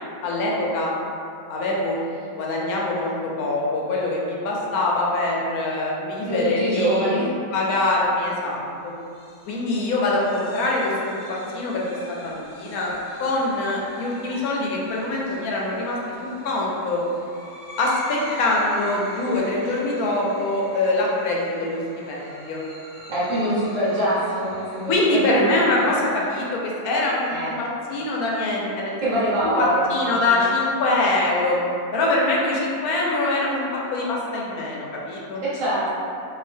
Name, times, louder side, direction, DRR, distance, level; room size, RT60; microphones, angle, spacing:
voice 1, 0.2-0.9 1.5-2.0 2.3-3.1 3.4-7.2 7.5-8.9 9.5-12.9 13.2-17.0 17.8-21.8 22.1-22.6 24.9-29.1 29.6-31.6 31.9-35.4, left 2 dB, 80° left, -3 dB, 1.1 m, -24 dB
voice 2, 6.2-7.3 23.1-25.7 27.3-27.5 29.0-30.3 35.4-36.0, right 1 dB, 60° right, -9 dB, 1.3 m, -24 dB
sound 1, 9.0-26.3, equal, 55° left, 0.9 m, -43 dB
2.7 x 2.7 x 3.3 m, 2.5 s
omnidirectional pair, 1.6 m